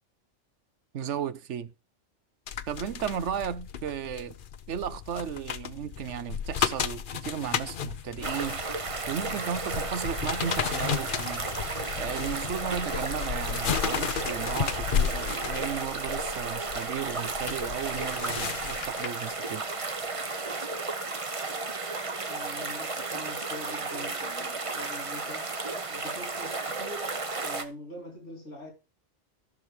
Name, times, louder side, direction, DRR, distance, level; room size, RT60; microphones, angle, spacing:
voice 1, 0.9-1.7 2.7-4.4 4.7-8.6 9.1-19.6, right 8 dB, 75° right, 1.1 m, -35 dB
sound 1, 2.5-19.3 19.8-20.0, left 8 dB, 50° left, 0.8 m, -34 dB
sound 2, 8.2-27.6, right 3 dB, 30° right, 0.9 m, -33 dB
voice 2, 22.3-25.5 25.9-28.7, left 1 dB, 85° left, 3.7 m, -44 dB
14.5 x 6.3 x 3.3 m
omnidirectional pair, 1.2 m